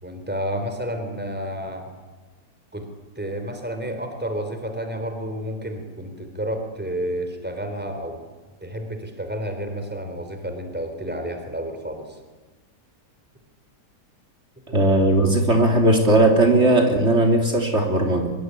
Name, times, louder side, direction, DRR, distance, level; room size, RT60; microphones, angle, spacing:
voice 1, 0.0-1.9 2.7-2.9 3.2-8.2 8.6-12.2 14.7-14.8, equal, 5° right, 6 dB, 3.7 m, -30 dB
voice 2, 14.7-18.3, right 1 dB, 40° right, 2 dB, 3.6 m, -18 dB
24.5 x 23.0 x 9.8 m, 1.3 s
omnidirectional pair, 1.8 m